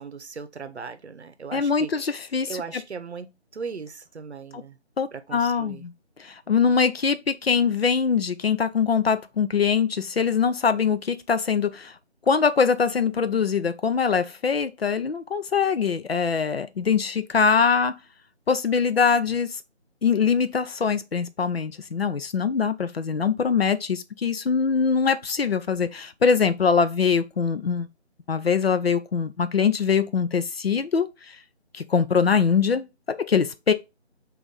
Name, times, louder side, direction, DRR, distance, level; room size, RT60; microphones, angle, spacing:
voice 1, 0.0-2.1 2.5-4.8 5.1-5.8, right 5 dB, 70° right, 0.7 m, -38 dB
voice 2, 1.5-2.6 5.0-5.9 6.2-11.9 12.3-17.9 18.5-19.6 20.0-27.9 28.3-31.1 31.7-33.7, left 6 dB, 60° left, 0.5 m, -23 dB
4.9 x 2.5 x 4.0 m
figure-of-eight pair, 165°, 34 cm